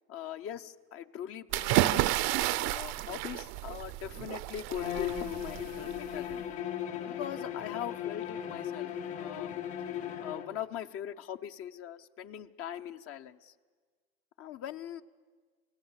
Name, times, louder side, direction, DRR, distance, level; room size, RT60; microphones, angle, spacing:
voice 1, 0.1-2.0 2.6-6.4 7.1-8.9 9.2-9.6 10.2-13.5 14.4-15.0, left 10 dB, 45° left, 9 dB, 0.9 m, -41 dB
sound 1, 1.5-6.3, right 17 dB, 55° right, 0.7 m, -31 dB
Bowed string instrument, 4.7-10.5, left 10 dB, 85° left, 3.5 m, -37 dB
28.0 x 17.0 x 8.1 m, 1.5 s
supercardioid pair, 115°, 32 cm